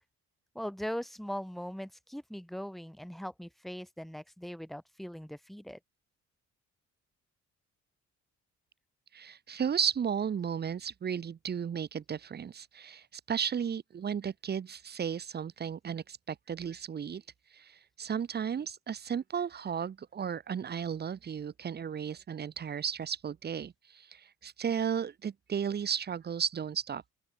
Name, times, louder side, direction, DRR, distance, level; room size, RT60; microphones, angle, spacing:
voice 1, 0.5-5.8, equal, ahead, 2.7 m, -40 dB
voice 2, 9.1-17.2 17.5-27.0, right 7 dB, 35° right, 0.6 m, -34 dB
open air
cardioid pair, 90°, 30 cm